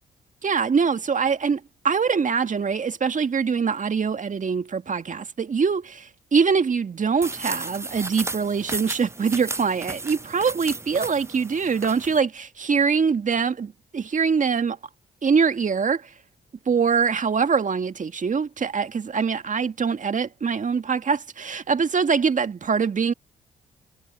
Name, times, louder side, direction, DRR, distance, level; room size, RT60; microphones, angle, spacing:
voice 1, 0.4-14.8 15.2-16.1 16.7-23.1, right 5 dB, 40° right, 1.8 m, -23 dB
sound 1, 7.2-12.2, right 2 dB, 15° right, 0.7 m, -34 dB
hypercardioid pair, 45°, 20 cm